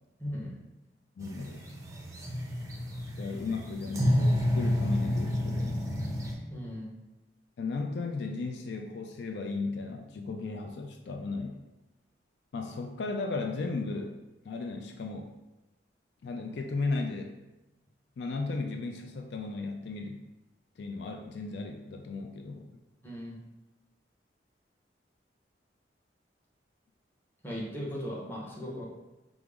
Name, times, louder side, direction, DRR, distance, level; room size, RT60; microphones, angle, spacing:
voice 1, 0.2-0.5 6.5-6.9 23.0-23.4 27.4-28.8, equal, 10° left, -5 dB, 0.8 m, -37 dB
voice 2, 1.2-1.6 3.2-6.0 7.6-11.6 12.5-14.2 14.4-15.3 16.2-17.3 18.2-20.2 20.8-22.7, left 3 dB, 70° left, 4 dB, 0.3 m, -35 dB
sound 1, 1.2-6.3, left 1 dB, 20° right, 0.5 m, -30 dB
4.8 x 2.0 x 3.5 m, 0.99 s
head